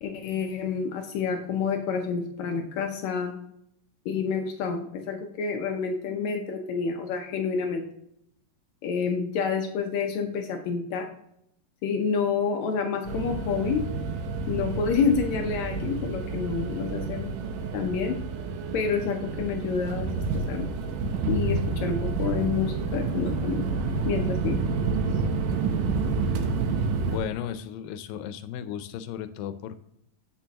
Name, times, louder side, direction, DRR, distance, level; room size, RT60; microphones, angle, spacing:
voice 1, 0.0-3.3 4.1-7.9 8.8-11.1 11.8-13.8 14.5-17.3 17.7-18.2 18.7-20.7 21.3-23.6 24.1-24.6, left 6 dB, 70° left, 4 dB, 1.8 m, -28 dB
sound 1, 13.1-27.2, right 4 dB, 80° right, 2.4 m, -29 dB
voice 2, 27.1-29.8, left 9 dB, 90° left, 11 dB, 2.3 m, -35 dB
8.3 x 6.2 x 2.9 m, 0.74 s
omnidirectional pair, 3.9 m